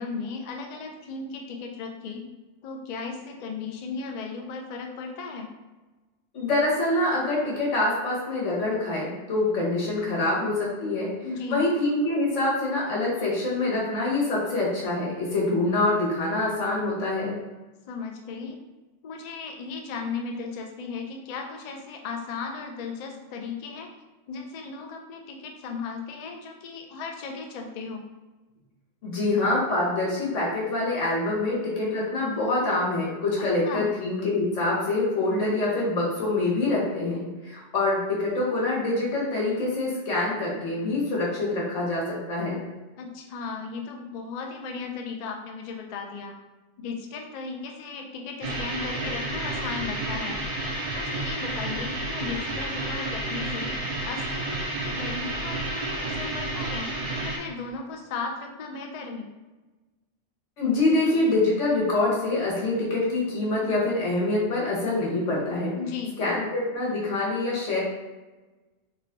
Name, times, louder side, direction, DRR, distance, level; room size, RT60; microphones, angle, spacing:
voice 1, 0.0-2.2 2.6-5.5 11.2-11.7 17.9-18.6 19.0-23.9 24.3-28.1 33.4-33.9 43.0-46.3 46.8-50.4 50.9-53.7 54.0-56.9 57.2-59.3 65.8-66.2, left 4 dB, 60° left, 2 dB, 0.4 m, -36 dB
voice 2, 6.3-11.1 11.5-17.4 29.0-42.6 60.6-65.7 66.2-67.8, left 2 dB, 85° left, -5 dB, 1.4 m, -25 dB
sound 1, 48.4-57.4, right 2 dB, 50° right, 0.4 m, -31 dB
3.3 x 2.2 x 3.7 m, 1.2 s
omnidirectional pair, 1.2 m